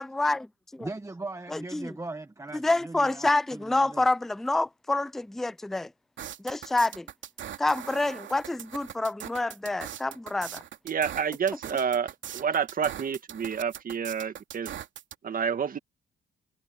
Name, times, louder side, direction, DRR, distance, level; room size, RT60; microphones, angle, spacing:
voice 1, 0.0-0.9 1.5-2.0 2.5-5.9 6.4-7.1 7.6-10.6, left 2 dB, ahead, 0.3 m, -27 dB
voice 2, 0.8-4.0, right 2 dB, 15° right, 1.4 m, -39 dB
sound 1, 6.2-15.1, right 10 dB, 70° right, 2.7 m, -41 dB
voice 3, 10.8-14.7 15.2-15.8, right 7 dB, 45° right, 1.7 m, -29 dB
cardioid pair, 90°, 20 cm